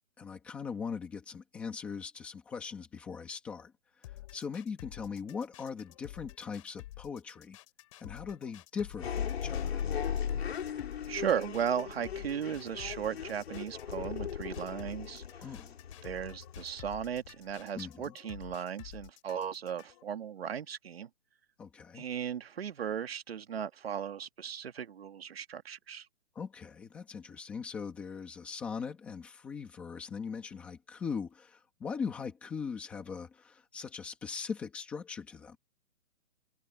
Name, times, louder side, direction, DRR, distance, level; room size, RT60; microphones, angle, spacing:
voice 1, 0.2-3.7 4.3-7.6 8.0-9.8 15.4-15.7 17.7-18.1 21.6-22.0 26.3-35.6, left 6 dB, 5° left, 1.1 m, -40 dB
sound 1, 4.0-20.0, left 16 dB, 25° left, 5.8 m, -50 dB
sound 2, 9.0-17.6, left 8 dB, 45° left, 3.7 m, -38 dB
voice 2, 11.1-15.5 16.0-21.1 21.9-26.1, right 8 dB, 45° right, 2.0 m, -36 dB
hypercardioid pair, 175°, 42 cm